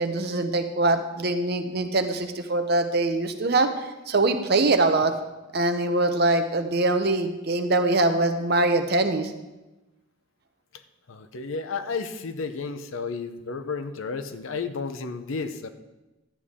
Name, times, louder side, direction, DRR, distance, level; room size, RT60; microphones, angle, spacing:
voice 1, 0.0-3.7 4.1-5.1 5.5-9.3, right 2 dB, 50° right, 7 dB, 0.8 m, -23 dB
voice 2, 11.1-15.7, left 4 dB, 80° left, 10 dB, 0.7 m, -32 dB
11.5 x 8.4 x 3.6 m, 1.0 s
head